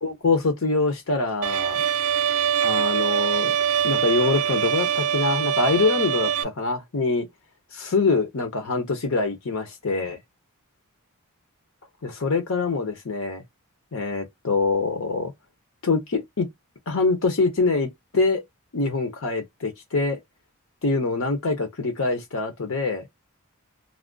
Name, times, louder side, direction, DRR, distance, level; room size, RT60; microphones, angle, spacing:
voice 1, 0.0-1.8 2.6-3.5 3.8-7.3 7.7-10.2 12.0-13.4 13.9-15.3 15.8-16.5 16.9-18.4 18.7-20.2 20.8-23.0, left 3 dB, 65° left, 0.7 m, -24 dB
Bowed string instrument, 1.4-6.4, right 9 dB, 80° right, 0.4 m, -23 dB
2.4 x 2.0 x 3.6 m
head